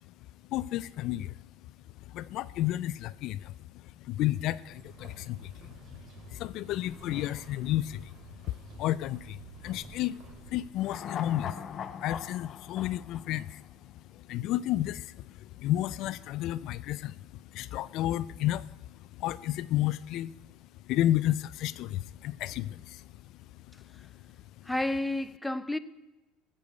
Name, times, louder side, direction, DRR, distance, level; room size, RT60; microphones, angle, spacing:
voice 1, 0.5-1.4 2.1-20.4 20.8-23.2 23.7-24.3 24.6-24.7, left 14 dB, 60° left, 0.3 m, -32 dB
sound 1, 4.7-10.7, right 4 dB, 50° right, 2.4 m, -51 dB
sound 2, 10.8-14.2 14.5-14.6, left 8 dB, 40° left, 0.7 m, -40 dB
voice 2, 24.6-25.8, left 1 dB, 5° left, 0.6 m, -30 dB
13.5 x 6.9 x 8.0 m
cardioid pair, 125°, 0 cm